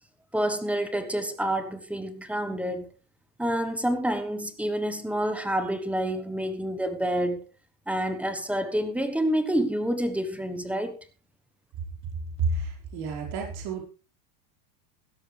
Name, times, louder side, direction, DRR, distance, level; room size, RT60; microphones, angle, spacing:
voice 1, 0.3-2.9 3.4-7.5 7.9-11.0, right 1 dB, 5° right, 1.2 m, -28 dB
voice 2, 12.4-13.8, right 3 dB, 50° right, 5.0 m, -30 dB
16.5 x 12.5 x 3.4 m
supercardioid pair, 155°, 47 cm